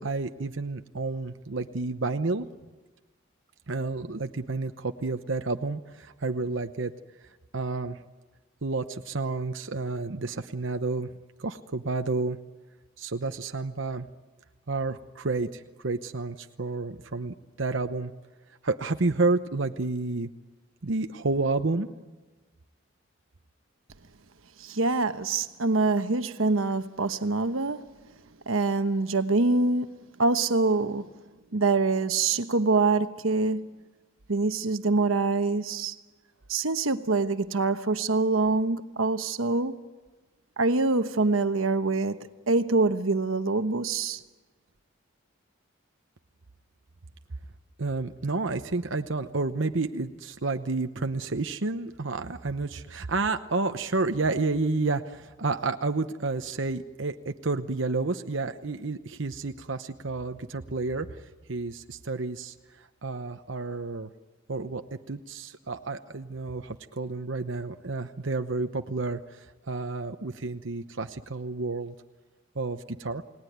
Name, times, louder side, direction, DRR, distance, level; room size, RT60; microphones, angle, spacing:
voice 1, 0.0-2.5 3.7-6.9 7.5-8.0 8.6-11.1 11.4-12.4 13.0-14.1 14.7-18.1 18.6-20.3 20.8-21.9 47.8-64.1 64.5-71.9 72.5-73.2, right 3 dB, 70° right, 0.9 m, -30 dB
voice 2, 24.6-27.9 28.5-31.1 31.5-33.7 34.3-35.9 36.5-39.8 40.6-44.2, right 3 dB, 90° right, 1.1 m, -25 dB
29.5 x 19.0 x 9.4 m
head